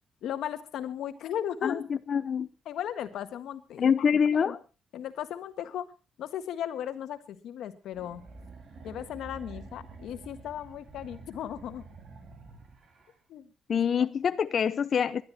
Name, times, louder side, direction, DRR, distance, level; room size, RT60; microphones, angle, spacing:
voice 1, 0.2-1.8 2.7-4.1 4.9-5.9 6.2-8.2 8.8-11.9 13.3-13.5, left 10 dB, 90° left, 1.8 m, -36 dB
voice 2, 1.6-2.5 3.8-4.6 13.7-15.2, left 7 dB, 50° left, 0.8 m, -25 dB
sound 1, 7.9-13.1, right 3 dB, 50° right, 4.8 m, -48 dB
20.5 x 12.0 x 4.2 m
cardioid pair, 115°, 0 cm